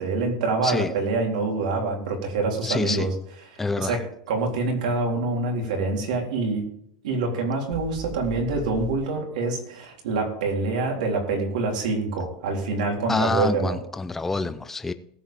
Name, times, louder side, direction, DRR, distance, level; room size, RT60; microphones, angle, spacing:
voice 1, 0.0-3.1 3.5-6.7 7.0-13.8, right 3 dB, 85° right, 3.7 m, -26 dB
voice 2, 2.6-3.1 3.6-4.0 13.1-14.9, left 3 dB, 10° left, 0.6 m, -26 dB
sound 1, 7.7-9.0, right 2 dB, 65° right, 5.4 m, -37 dB
18.0 x 7.8 x 3.6 m
supercardioid pair, 160°, 4 cm